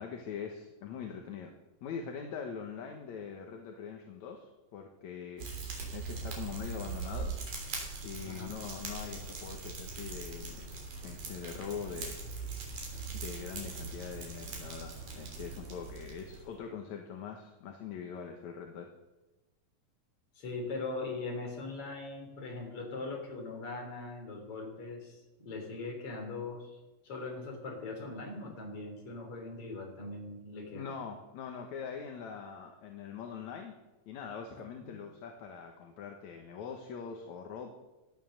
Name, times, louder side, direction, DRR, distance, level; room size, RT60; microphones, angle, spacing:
voice 1, 0.0-1.5 1.8-5.5 5.9-7.3 8.0-10.7 11.0-12.2 13.1-18.9 30.7-33.7 34.1-37.7, left 6 dB, 65° left, 3 dB, 2.3 m, -43 dB
Fire, 5.4-16.5, right 4 dB, 65° right, 5.0 m, -41 dB
voice 2, 20.4-26.8 27.0-30.9 34.8-34.9, left 3 dB, 40° left, 1 dB, 4.2 m, -40 dB
16.5 x 11.5 x 6.5 m, 1.1 s
omnidirectional pair, 4.0 m